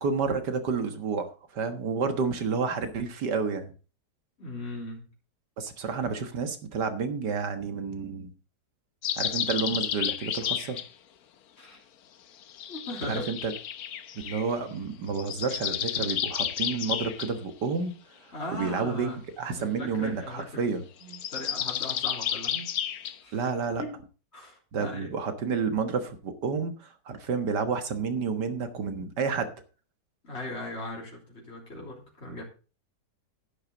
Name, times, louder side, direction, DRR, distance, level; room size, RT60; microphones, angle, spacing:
voice 1, 0.0-3.7 5.6-8.3 9.2-10.8 13.1-13.5 14.2-17.9 18.5-20.8 23.3-23.8 24.7-29.5, right 5 dB, 90° right, 8 dB, 2.1 m, -30 dB
voice 2, 4.4-5.1 11.6-11.8 12.7-13.3 18.3-19.2 19.6-20.7 21.0-22.7 23.2-23.5 23.8-24.0 24.3-25.2 30.2-32.4, left 1 dB, 40° left, -2 dB, 3.8 m, -39 dB
sound 1, 9.0-10.9 12.5-14.5 15.1-17.3 21.0-23.2, left 10 dB, 70° left, 1.3 m, -31 dB
11.0 x 10.5 x 3.9 m, 0.34 s
omnidirectional pair, 1.8 m